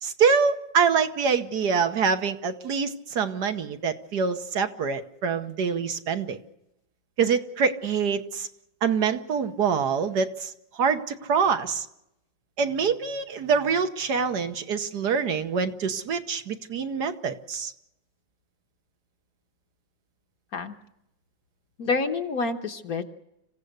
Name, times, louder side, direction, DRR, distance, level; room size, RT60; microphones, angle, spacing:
voice 1, 0.0-6.4 7.2-8.5 8.8-11.9 12.6-17.7, right 6 dB, 65° right, 8 dB, 1.7 m, -25 dB
voice 2, 21.8-23.1, left 4 dB, 55° left, 6 dB, 1.6 m, -28 dB
26.5 x 15.5 x 8.1 m, 0.84 s
omnidirectional pair, 1.9 m